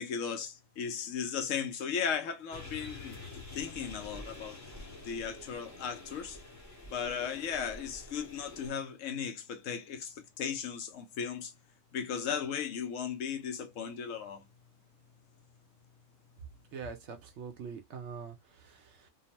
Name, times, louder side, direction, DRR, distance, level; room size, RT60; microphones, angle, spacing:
voice 1, 0.0-3.1 3.5-4.6 5.0-6.4 6.9-11.5 11.9-14.4, left 7 dB, 75° left, 1.0 m, -36 dB
sound 1, 2.5-8.7, left 2 dB, 15° left, 0.7 m, -47 dB
voice 2, 16.7-19.1, right 5 dB, 65° right, 0.8 m, -44 dB
2.8 x 2.0 x 2.9 m
omnidirectional pair, 1.4 m